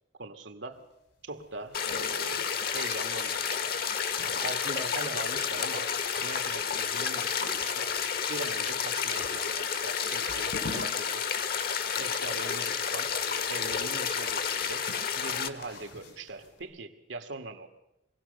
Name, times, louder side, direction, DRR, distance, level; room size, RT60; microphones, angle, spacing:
voice 1, 0.2-0.8 1.2-3.8 4.4-5.9 6.2-7.8 8.3-11.3 12.0-13.1 13.5-14.9 15.1-17.7, right 3 dB, 85° right, 6 dB, 2.0 m, -41 dB
sound 1, 1.3-16.6, left 2 dB, 90° left, 3.7 m, -48 dB
sound 2, 1.7-15.5, left 7 dB, 55° left, 1.2 m, -31 dB
22.5 x 17.0 x 6.7 m, 0.90 s
head